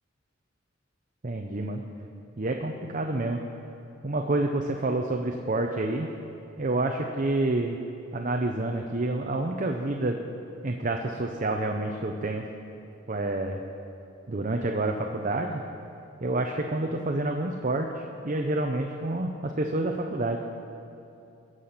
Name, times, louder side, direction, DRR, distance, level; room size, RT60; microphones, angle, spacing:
voice 1, 1.2-1.8 2.4-3.4 4.0-6.1 6.6-7.8 8.1-10.2 10.6-12.5 13.1-13.6 14.3-15.6 16.2-20.4, right 2 dB, 40° right, 3 dB, 0.7 m, -28 dB
22.0 x 7.8 x 5.7 m, 2.7 s
head